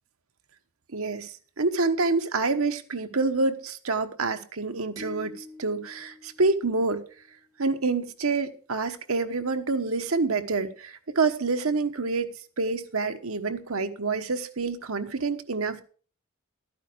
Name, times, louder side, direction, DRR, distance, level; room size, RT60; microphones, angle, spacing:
voice 1, 0.9-7.0 7.6-15.8, right 3 dB, 75° right, 1.1 m, -27 dB
sound 1, 5.0-7.4, left 2 dB, 15° right, 7.8 m, -46 dB
12.0 x 9.2 x 5.1 m
head